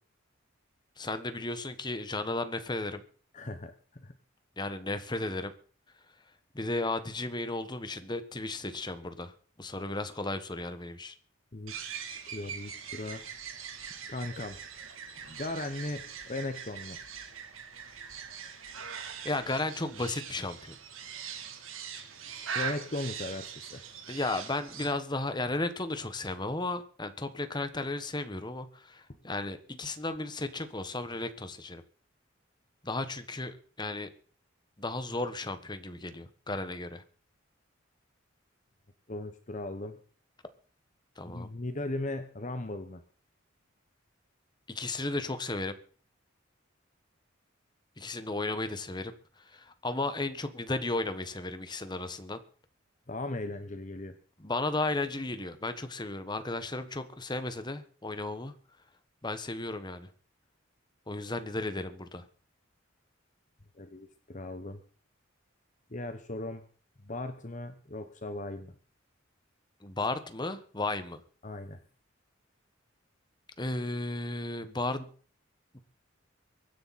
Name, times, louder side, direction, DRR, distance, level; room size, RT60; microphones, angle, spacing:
voice 1, 1.0-3.0 4.6-5.5 6.5-11.1 19.2-20.8 24.1-31.8 32.8-34.1 34.8-37.0 41.2-41.5 44.7-45.8 48.0-52.4 54.4-58.5 59.2-60.1 61.1-62.3 69.8-71.2 73.6-75.1 75.7-75.8, left 2 dB, 20° left, 10 dB, 1.3 m, -34 dB
voice 2, 3.3-4.1 11.5-13.2 14.1-14.6 15.2-17.0 22.5-23.8 39.1-40.0 41.2-43.0 53.1-54.2 63.7-64.8 65.9-66.6 67.0-68.7 71.4-71.8, left 2 dB, 35° left, 9 dB, 1.1 m, -38 dB
sound 1, 11.7-24.9, right 7 dB, 90° right, 2.7 m, -42 dB
23.5 x 10.0 x 4.2 m, 0.43 s
head